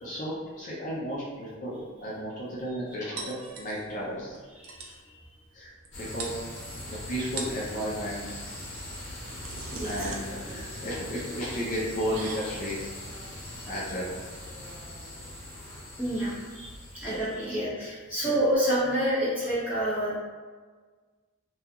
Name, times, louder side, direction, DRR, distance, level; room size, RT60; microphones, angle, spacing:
voice 1, 0.0-3.1 3.6-4.4 5.5-5.7 6.0-6.4 6.9-8.2 9.8-12.8 13.7-14.1 17.0-17.2 17.5-17.7 18.2-18.3, equal, 35° left, -6 dB, 0.4 m, -33 dB
voice 2, 3.1-3.5 4.5-5.2 9.7-10.1 10.4-10.5 16.0-20.2, right 1 dB, 5° right, -11 dB, 0.9 m, -29 dB
sound 1, 3.2-4.0 4.3-4.4 4.6-5.0 5.8-5.9 6.2-6.8 7.2-7.7 8.9-15.5, right 3 dB, 80° right, 0.4 m, -42 dB
sound 2, 5.9-17.5, left 1 dB, 65° left, 1.0 m, -41 dB
2.3 x 2.2 x 2.7 m, 1.5 s
head